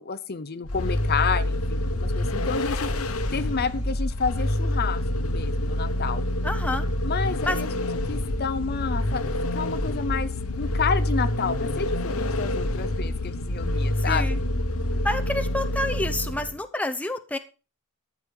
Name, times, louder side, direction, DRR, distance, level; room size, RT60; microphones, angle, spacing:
voice 1, 0.0-2.9 3.3-6.2 7.0-7.7 8.1-9.2 9.5-10.3 10.6-14.4, left 5 dB, 45° left, 13 dB, 0.7 m, -30 dB
Vehicle, 0.6-16.6, left 1 dB, 75° left, 1.2 m, -27 dB
voice 2, 6.4-6.9 7.5-7.6 14.0-14.4 15.0-17.4, left 1 dB, 5° left, 7 dB, 0.8 m, -28 dB
13.5 x 6.2 x 5.4 m, 0.33 s
head